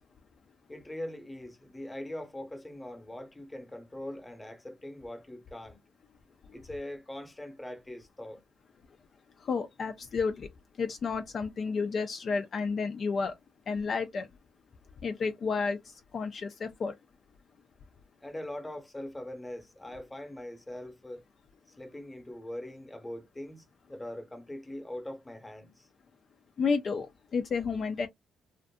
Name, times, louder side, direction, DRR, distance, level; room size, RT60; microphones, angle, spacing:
voice 1, 0.7-5.8 6.5-8.4 18.2-21.2 21.7-25.9, left 1 dB, 15° left, 0.9 m, -42 dB
voice 2, 9.4-10.5 10.8-13.3 13.7-14.3 15.0-16.9 26.6-28.1, left 5 dB, 50° left, 0.4 m, -31 dB
2.5 x 2.5 x 2.2 m
cardioid pair, 90°, 0 cm